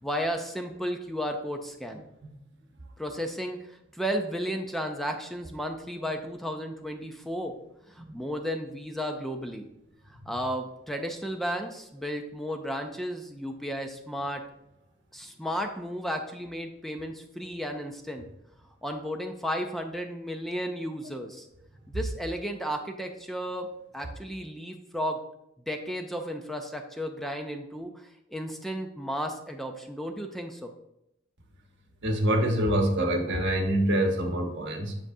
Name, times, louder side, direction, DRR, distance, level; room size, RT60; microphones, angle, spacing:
voice 1, 0.0-2.0 3.0-7.5 7.9-9.7 10.3-14.4 15.1-18.3 18.8-21.5 21.9-23.7 23.9-25.2 25.7-30.7, equal, ahead, 4 dB, 0.5 m, -33 dB
voice 2, 32.0-35.0, right 1 dB, 60° right, 3 dB, 1.2 m, -25 dB
7.6 x 7.3 x 2.7 m, 0.83 s
head